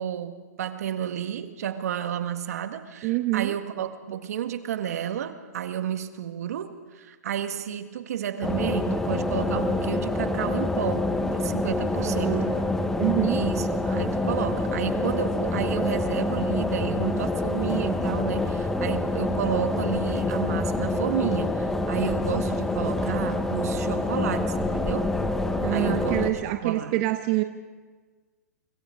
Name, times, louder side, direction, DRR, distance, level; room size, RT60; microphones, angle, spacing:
voice 1, 0.0-12.5 13.2-25.1 25.7-27.0, right 9 dB, 65° right, 8 dB, 1.6 m, -31 dB
voice 2, 3.0-3.6 12.0-13.4 25.6-27.4, right 17 dB, 40° right, 8 dB, 1.0 m, -27 dB
sound 1, 8.4-26.3, left 2 dB, 5° left, 1.0 m, -26 dB
29.0 x 25.5 x 3.7 m, 1.4 s
hypercardioid pair, 145°, 9 cm